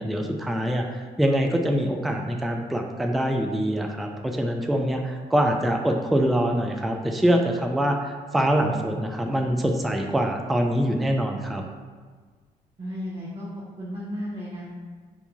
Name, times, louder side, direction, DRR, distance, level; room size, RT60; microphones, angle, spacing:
voice 1, 0.0-11.6, equal, ahead, 3 dB, 0.4 m, -24 dB
voice 2, 12.8-13.5 13.8-14.6, equal, 25° right, -7 dB, 0.9 m, -33 dB
4.4 x 2.6 x 2.8 m, 1.5 s
hypercardioid pair, 45°, 21 cm